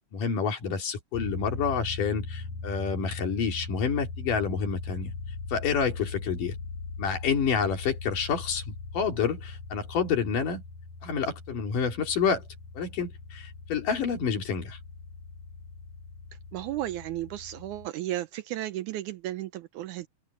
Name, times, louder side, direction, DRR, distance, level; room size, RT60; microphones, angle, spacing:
voice 1, 0.0-5.1 5.5-6.6 7.0-10.6 11.0-12.5 12.7-14.8, left 6 dB, 85° left, 4.7 m, -28 dB
sound 1, 1.1-17.9, left 3 dB, 70° left, 4.7 m, -40 dB
voice 2, 16.5-20.1, right 14 dB, 80° right, 2.1 m, -34 dB
open air
omnidirectional pair, 3.7 m